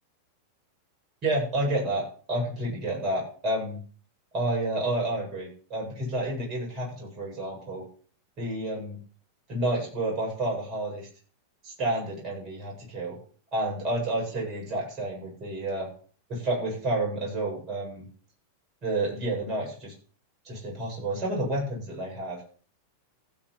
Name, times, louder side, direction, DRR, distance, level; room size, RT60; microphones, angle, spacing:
voice 1, 1.2-3.8 4.3-7.8 8.4-9.0 9.5-11.1 11.6-13.2 13.5-15.9 16.3-18.1 18.8-19.9 20.4-22.4, right 1 dB, 35° right, -1 dB, 7.9 m, -30 dB
15.5 x 6.7 x 5.7 m, 0.43 s
figure-of-eight pair, 90°, 0 cm